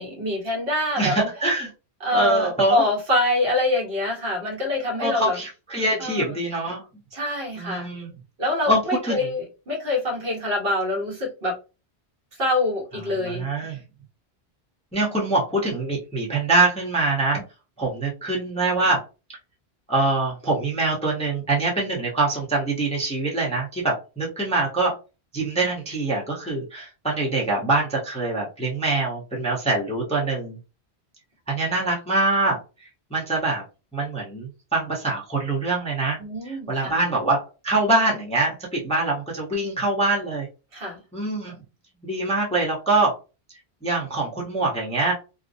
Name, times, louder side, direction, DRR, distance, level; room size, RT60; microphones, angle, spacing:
voice 1, 0.0-1.1 2.0-5.4 6.0-6.4 7.1-7.9 8.4-11.5 12.4-13.4 13.7-13.8 36.2-36.9 40.7-41.0, left 1 dB, 60° right, -1 dB, 1.1 m, -25 dB
voice 2, 1.0-1.7 2.1-2.8 5.0-6.8 7.6-8.1 8.7-9.3 13.2-13.8 14.9-17.4 17.8-19.0 19.9-24.9 25.3-30.6 31.5-32.6 33.1-33.6 33.9-36.2 36.4-40.5 41.1-41.5 42.0-43.2 43.8-45.1, right 2 dB, 5° left, -4 dB, 0.6 m, -24 dB
2.6 x 2.0 x 2.5 m, 0.30 s
omnidirectional pair, 1.1 m